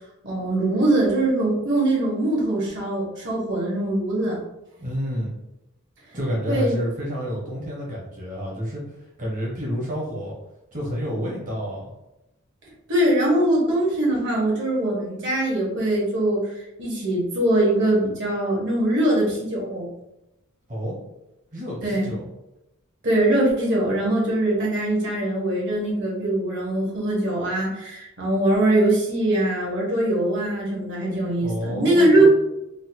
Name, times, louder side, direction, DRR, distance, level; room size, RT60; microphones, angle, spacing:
voice 1, 0.2-4.4 6.4-6.7 12.9-16.4 16.8-19.9 21.8-22.1 23.0-32.3, right 1 dB, 60° right, -4 dB, 1.3 m, -22 dB
voice 2, 4.8-5.3 6.1-10.3 10.7-11.8 20.7-21.0 21.5-22.3 31.4-32.3, equal, 40° right, -4 dB, 0.9 m, -29 dB
3.8 x 2.3 x 2.8 m, 0.90 s
head